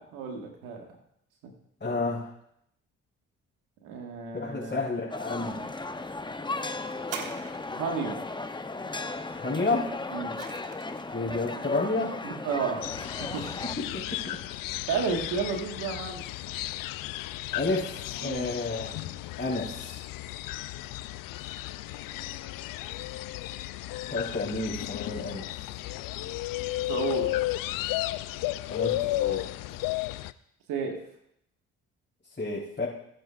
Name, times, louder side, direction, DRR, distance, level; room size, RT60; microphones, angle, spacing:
voice 1, 0.1-0.8 3.8-4.8 7.8-8.2 10.1-10.4 12.2-12.9 13.3-13.4 14.9-16.2 18.2-18.5 26.2-26.3 26.9-27.3 30.7-31.0, right 5 dB, 85° right, 2 dB, 1.8 m, -32 dB
voice 2, 1.8-2.3 4.3-5.6 9.3-9.9 11.1-12.1 13.6-14.4 17.5-20.0 24.1-25.5 28.7-29.8 32.4-32.9, left 3 dB, 30° left, -8 dB, 4.1 m, -31 dB
sound 1, 5.1-13.8, left 3 dB, 15° left, 0.8 m, -36 dB
sound 2, 7.0-8.1 9.8-11.1 12.0-12.1, right 7 dB, 65° right, 1.3 m, -41 dB
sound 3, 12.8-30.3, left 16 dB, 75° left, 0.5 m, -34 dB
18.5 x 8.9 x 2.5 m, 0.74 s
supercardioid pair, 55°, 34 cm